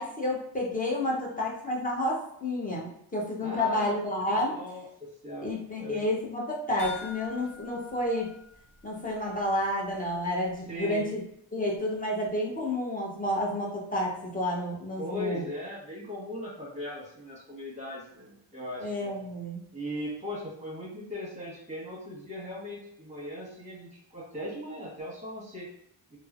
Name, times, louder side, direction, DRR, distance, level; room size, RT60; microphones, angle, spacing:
voice 1, 0.0-4.6 5.4-8.3 8.8-11.2 11.5-15.4 18.8-19.7, left 1 dB, 20° left, -3 dB, 0.7 m, -30 dB
voice 2, 3.4-4.1 4.5-5.5 5.8-6.1 10.7-11.1 15.0-18.9 19.7-25.7, left 1 dB, 15° right, -4 dB, 1.2 m, -38 dB
sound 1, 6.8-9.3 9.6-9.7 10.2-10.3, left 4 dB, 60° left, 1.1 m, -46 dB
3.1 x 2.0 x 2.4 m, 0.73 s
cardioid pair, 95°, 45 cm